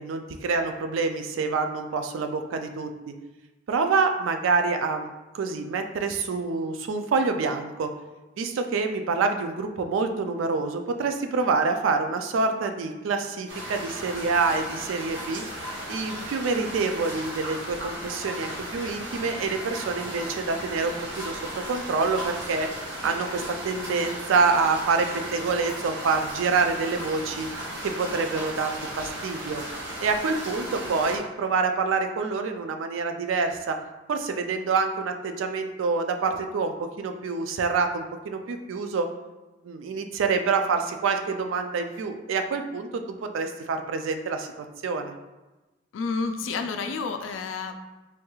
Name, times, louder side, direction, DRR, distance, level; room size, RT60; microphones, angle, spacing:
voice 1, 0.0-3.1 3.7-7.9 8.4-15.4 15.9-21.4 21.7-22.7 23.0-27.5 27.8-29.6 30.0-33.8 34.1-39.1 39.6-45.1, right 4 dB, 90° right, 6 dB, 0.3 m, -27 dB
sound 1, 13.5-31.2, right 1 dB, 70° right, 0.7 m, -36 dB
voice 2, 45.9-47.7, left 4 dB, 80° left, 6 dB, 0.3 m, -30 dB
3.3 x 2.3 x 3.0 m, 1.1 s
head